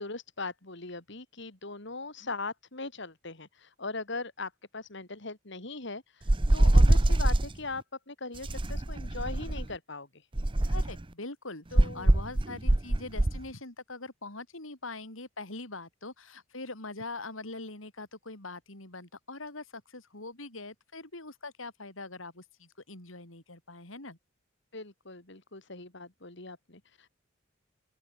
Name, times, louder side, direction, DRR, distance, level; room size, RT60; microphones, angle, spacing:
voice 1, 0.0-10.3 11.7-12.1 24.7-27.1, left 3 dB, 60° left, 3.6 m, -40 dB
sound 1, 6.3-7.5 8.4-9.7 10.3-11.0 11.8-13.4, right 1 dB, 25° right, 0.8 m, -23 dB
voice 2, 10.6-24.2, left 3 dB, 80° left, 4.7 m, -43 dB
open air
head